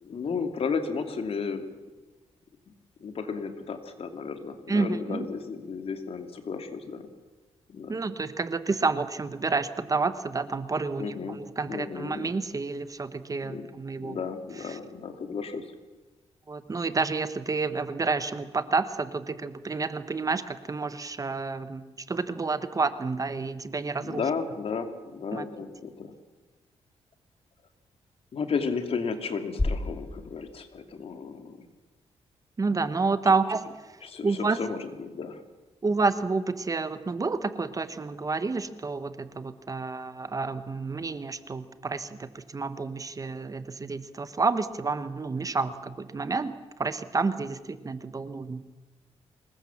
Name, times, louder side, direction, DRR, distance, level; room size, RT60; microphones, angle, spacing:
voice 1, 0.0-1.7 3.0-7.1 7.7-7.9 11.0-11.4 11.7-12.4 13.4-13.7 14.0-15.7 24.0-26.1 28.3-31.6 34.0-35.4, left 5 dB, 55° left, 7 dB, 2.8 m, -33 dB
voice 2, 4.7-5.3 7.9-14.2 14.6-14.8 16.5-24.2 25.3-25.5 32.6-33.9 34.2-34.6 35.8-48.6, right 4 dB, 30° right, 12 dB, 1.2 m, -29 dB
sound 1, 29.6-31.7, left 2 dB, 15° left, 1.0 m, -33 dB
25.5 x 21.5 x 7.3 m, 1.2 s
cardioid pair, 110°, 11 cm